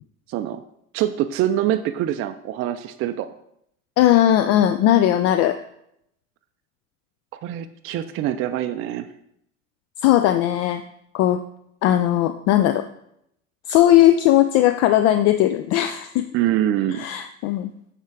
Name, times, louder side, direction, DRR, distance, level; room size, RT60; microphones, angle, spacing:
voice 1, 0.3-0.6 0.9-3.3 7.4-9.1 16.3-17.1, right 12 dB, 35° right, 9 dB, 0.5 m, -24 dB
voice 2, 4.0-5.6 10.0-10.8 11.1-11.4 11.8-12.8 13.7-16.3 16.9-17.7, left 12 dB, 40° left, 10 dB, 0.4 m, -18 dB
9.3 x 3.7 x 4.6 m, 0.75 s
figure-of-eight pair, 70°, 41 cm